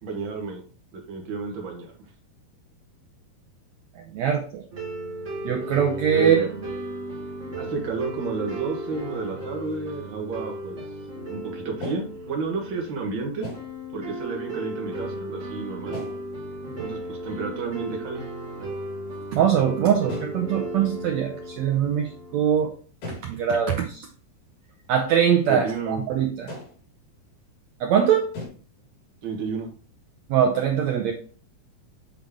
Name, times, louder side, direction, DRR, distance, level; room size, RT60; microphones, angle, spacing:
voice 1, 0.0-0.6 0.9-1.9 6.1-6.5 7.6-10.8 11.3-13.5 13.9-16.0 16.8-18.2 25.5-26.0 29.2-29.7, right 4 dB, 55° right, 0 dB, 1.4 m, -31 dB
voice 2, 4.1-4.6 5.4-6.4 19.3-22.7 23.2-24.1 24.9-26.5 27.8-28.3 30.3-31.1, right 8 dB, 90° right, 2 dB, 1.5 m, -22 dB
sound 1, 4.7-22.7, right 1 dB, 30° right, 1.4 m, -35 dB
sound 2, 9.1-9.3 9.7-10.0 11.8-12.2 13.4-13.8 15.9-16.3 17.4-17.5 17.9-18.3 18.6-18.7 19.1-19.5 20.1-20.4 23.0-23.4 23.8-23.9 24.5-24.6 26.5-26.8 28.3-28.5, left 2 dB, 80° left, 5.0 m, -38 dB
8.4 x 4.0 x 3.5 m, 0.41 s
omnidirectional pair, 4.1 m